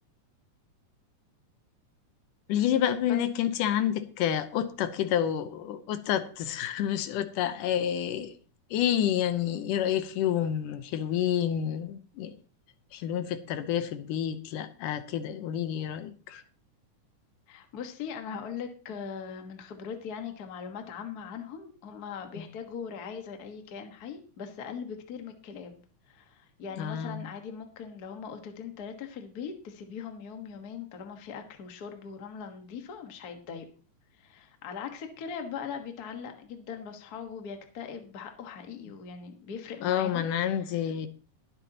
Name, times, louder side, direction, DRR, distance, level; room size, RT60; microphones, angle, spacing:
voice 1, 2.5-8.4 8.7-12.3 12.9-16.4 22.4-22.5 26.8-27.3 39.8-41.1, left 10 dB, 80° left, 2.4 m, -29 dB
voice 2, 17.5-33.7 34.2-40.9, left 6 dB, 45° left, 1.2 m, -40 dB
21.0 x 8.1 x 2.9 m
omnidirectional pair, 3.7 m